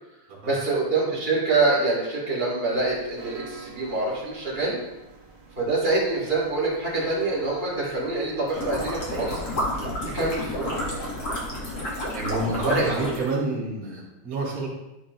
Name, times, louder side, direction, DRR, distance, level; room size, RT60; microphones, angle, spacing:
voice 1, 0.4-4.8 5.6-9.4 10.1-10.7 12.6-13.1, right 3 dB, 15° right, -7 dB, 2.2 m, -25 dB
sound 1, 2.7-12.9, right 5 dB, 80° right, 1.1 m, -45 dB
sound 2, 8.5-13.3, left 1 dB, 65° left, 0.9 m, -30 dB
voice 2, 12.1-14.7, right 2 dB, 50° right, -6 dB, 3.8 m, -29 dB
12.5 x 5.0 x 3.2 m, 0.96 s
omnidirectional pair, 4.8 m